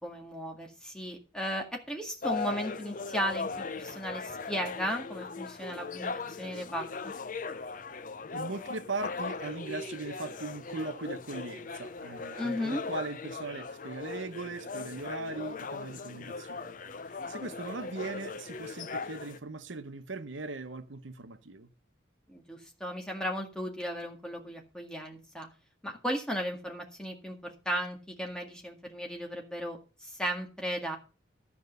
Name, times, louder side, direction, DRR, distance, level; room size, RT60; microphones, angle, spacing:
voice 1, 0.0-7.1 12.4-12.8 22.3-25.5 25.8-31.0, equal, 5° left, 2.0 m, -35 dB
sound 1, 2.2-19.4, left 4 dB, 45° left, 0.6 m, -39 dB
voice 2, 8.3-16.8 17.0-21.7, right 3 dB, 90° right, 1.0 m, -39 dB
13.0 x 5.3 x 6.7 m
head